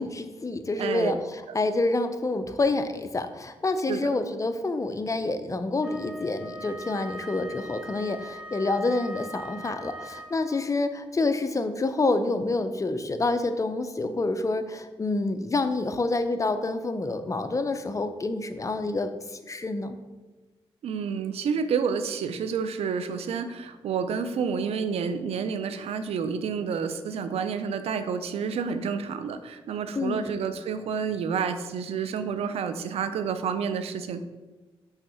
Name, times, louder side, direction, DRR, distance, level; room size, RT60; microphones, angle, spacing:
voice 1, 0.0-20.0 29.9-30.4, left 2 dB, 30° left, 9 dB, 0.6 m, -28 dB
voice 2, 0.8-1.1 3.9-4.1 20.8-34.2, right 6 dB, 90° right, 10 dB, 0.4 m, -29 dB
Wind instrument woodwind instrument, 5.8-10.7, right 1 dB, 10° right, 0.8 m, -41 dB
5.6 x 3.5 x 5.5 m, 1.2 s
cardioid pair, 65°, 10 cm